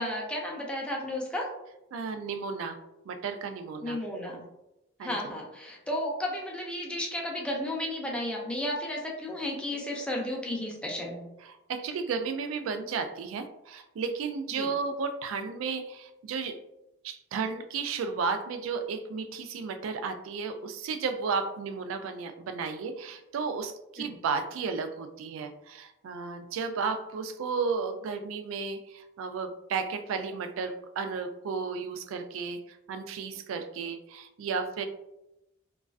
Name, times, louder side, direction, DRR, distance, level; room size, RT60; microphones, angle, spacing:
voice 1, 0.0-1.5 3.8-4.5 5.0-11.3 14.6-14.7 24.0-24.1, left 1 dB, 5° left, -2 dB, 0.4 m, -33 dB
voice 2, 1.9-2.8 3.1-4.0 5.0-5.2 11.5-16.6 17.0-34.9, right 5 dB, 80° right, 8 dB, 0.3 m, -33 dB
2.3 x 2.3 x 2.3 m, 0.90 s
head